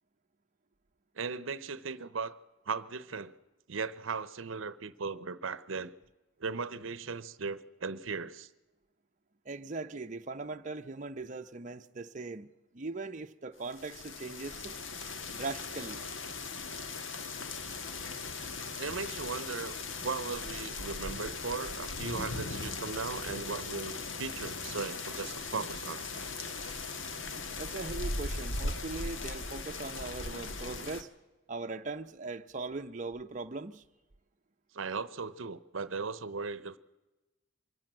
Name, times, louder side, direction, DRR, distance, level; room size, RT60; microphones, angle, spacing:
voice 1, 1.2-2.4 2.7-3.3 3.7-5.9 6.4-8.5 18.8-26.0 34.7-36.8, right 4 dB, 80° right, 0.8 m, -37 dB
voice 2, 9.4-12.5 12.7-14.8 15.3-16.1 27.6-31.1 31.5-33.8, right 3 dB, 40° right, 0.7 m, -40 dB
sound 1, 13.7-31.0, left 3 dB, 70° left, 1.5 m, -39 dB
24.5 x 14.0 x 8.8 m
head